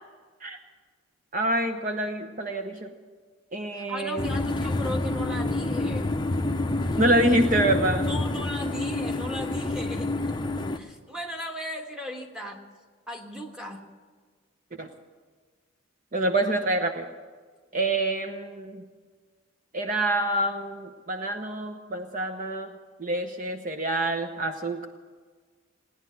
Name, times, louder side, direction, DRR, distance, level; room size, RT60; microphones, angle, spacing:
voice 1, 1.3-2.9 3.5-4.3 7.0-8.1 14.8-14.9 16.1-17.1 17.7-18.8 19.7-22.7 23.0-24.9, right 1 dB, 40° right, 5 dB, 0.8 m, -26 dB
voice 2, 3.7-6.1 8.0-10.4 10.7-12.6 13.1-13.8, equal, 5° right, 0 dB, 1.5 m, -36 dB
sound 1, 4.2-10.8, left 2 dB, 20° left, 0.6 m, -28 dB
17.0 x 10.5 x 7.8 m, 1.5 s
head